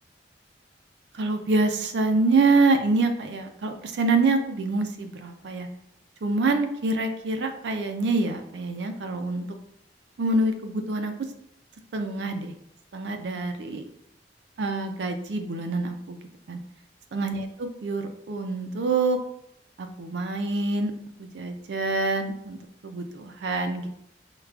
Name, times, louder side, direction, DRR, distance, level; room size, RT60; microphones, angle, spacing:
voice 1, 1.1-5.7 6.2-9.5 10.2-11.1 11.9-12.5 12.9-13.8 14.6-16.2 16.5-16.6 17.1-19.2 19.8-20.9 21.2-23.9, right 3 dB, 70° right, 6 dB, 0.4 m, -26 dB
4.7 x 2.2 x 2.3 m, 0.77 s
head